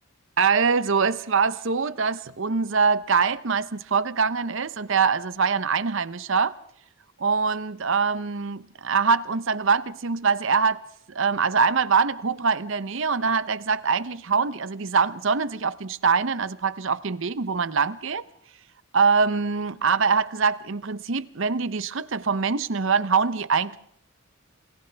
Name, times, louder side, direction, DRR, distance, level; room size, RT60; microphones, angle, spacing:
voice 1, 0.4-6.5 7.2-10.8 11.1-18.2 18.9-23.8, right 5 dB, 55° right, 0.7 m, -23 dB
28.5 x 27.5 x 3.4 m
head